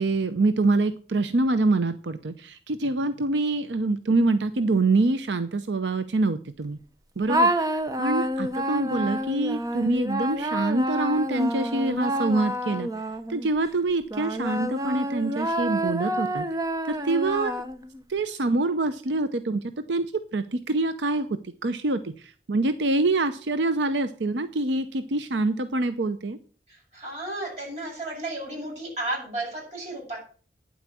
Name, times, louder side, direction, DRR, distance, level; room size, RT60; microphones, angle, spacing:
voice 1, 0.0-6.8 7.2-12.9 13.3-16.5 16.9-17.5 18.1-19.6 19.9-26.4, right 2 dB, 85° right, 11 dB, 0.7 m, -25 dB
sound 1, 7.3-13.5 14.1-18.0, right 1 dB, 20° right, 0.8 m, -28 dB
voice 2, 26.7-30.2, right 2 dB, 40° right, -3 dB, 7.3 m, -33 dB
9.5 x 7.9 x 6.1 m, 0.41 s
head